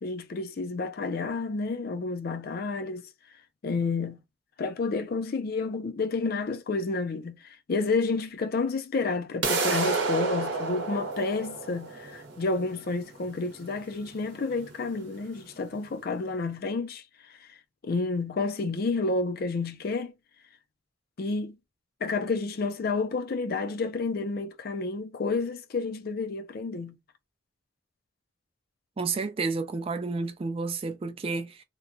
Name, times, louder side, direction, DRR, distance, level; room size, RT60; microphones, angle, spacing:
voice 1, 0.0-3.1 3.6-4.2 4.6-17.0 17.3-17.6 17.8-20.1 21.2-21.6 22.0-27.0, left 3 dB, 50° left, 0.4 m, -30 dB
sound 1, 9.4-15.4, right 3 dB, 60° right, 0.9 m, -31 dB
voice 2, 29.0-31.6, right 4 dB, 30° right, 0.3 m, -31 dB
2.9 x 2.2 x 2.5 m
head